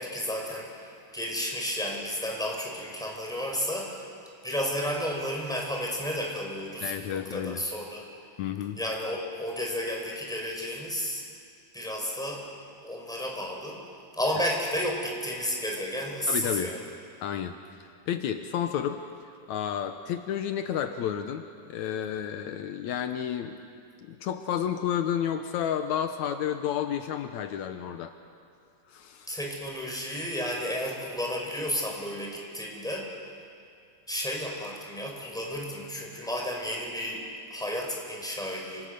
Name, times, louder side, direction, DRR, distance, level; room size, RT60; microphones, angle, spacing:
voice 1, 0.0-4.0 4.4-8.1 8.8-11.2 11.7-12.4 12.8-13.8 14.1-16.8 29.3-33.1 34.1-37.2 37.5-38.9, equal, ahead, -1 dB, 4.5 m, -32 dB
voice 2, 6.8-7.6 8.4-8.8 16.3-16.7 17.2-19.0 19.5-23.6 24.1-28.1 28.9-29.4, left 9 dB, 75° left, 7 dB, 2.2 m, -31 dB
27.5 x 26.5 x 6.7 m, 2.4 s
omnidirectional pair, 3.4 m